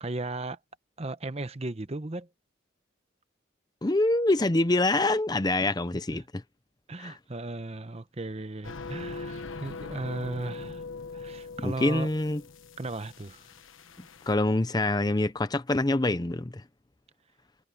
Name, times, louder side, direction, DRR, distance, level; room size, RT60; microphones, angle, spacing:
voice 1, 0.0-0.6 1.0-2.3 5.6-5.7 6.9-10.9 11.1-12.1 12.8-13.5, right 2 dB, 30° right, 0.9 m, -36 dB
voice 2, 3.8-6.4 7.0-7.2 11.6-12.4 14.0-16.6, left 2 dB, 20° left, 0.6 m, -26 dB
sound 1, 8.6-14.3, left 3 dB, 80° left, 1.3 m, -41 dB
head